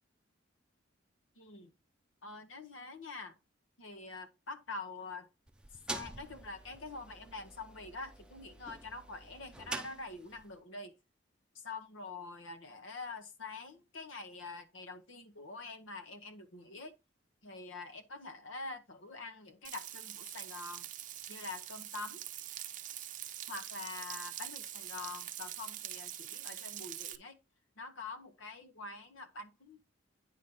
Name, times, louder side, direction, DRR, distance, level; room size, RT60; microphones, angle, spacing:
voice 1, 1.4-1.7 2.2-3.4 3.8-5.3 5.9-10.9 11.5-16.9 17.4-20.9 21.3-22.2 23.5-27.4 27.8-29.9, left 3 dB, 90° left, 1.1 m, -45 dB
sound 1, 5.5-10.6, right 2 dB, 5° right, 0.6 m, -46 dB
Frying (food), 19.6-27.2, right 12 dB, 45° right, 0.6 m, -44 dB
9.3 x 4.2 x 3.7 m
head